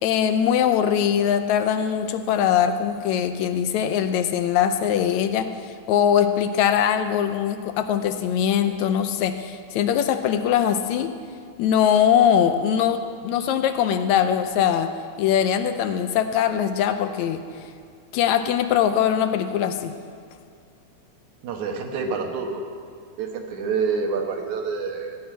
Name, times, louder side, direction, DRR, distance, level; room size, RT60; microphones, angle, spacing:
voice 1, 0.0-11.1 11.6-14.9 15.2-17.4 18.1-19.9, left 9 dB, 80° left, 9 dB, 1.9 m, -21 dB
voice 2, 21.4-22.7 23.2-25.2, right 5 dB, 80° right, 3 dB, 2.6 m, -27 dB
16.5 x 5.9 x 9.2 m, 2.3 s
omnidirectional pair, 3.4 m